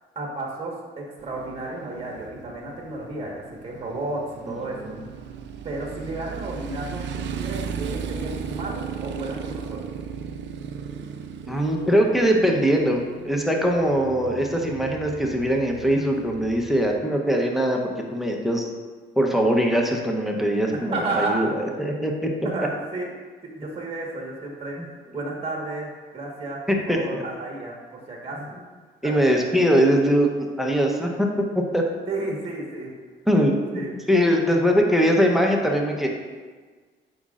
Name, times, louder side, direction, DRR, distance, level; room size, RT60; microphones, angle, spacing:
voice 1, 0.1-4.8 5.6-9.8 20.9-21.5 22.4-23.1 23.5-24.8 25.1-26.6 26.9-28.4 29.0-29.2 32.1-32.9 33.7-33.9, right 2 dB, 30° right, -2 dB, 1.4 m, -32 dB
Motorcycle, 1.2-16.9, right 6 dB, 65° right, 0.5 m, -36 dB
voice 2, 4.7-5.0 11.5-18.7 19.2-22.3 26.7-27.2 29.0-30.3 30.6-31.8 33.3-36.1, equal, ahead, 0 dB, 0.8 m, -22 dB
8.0 x 5.1 x 2.5 m, 1.4 s
cardioid pair, 90°, 20 cm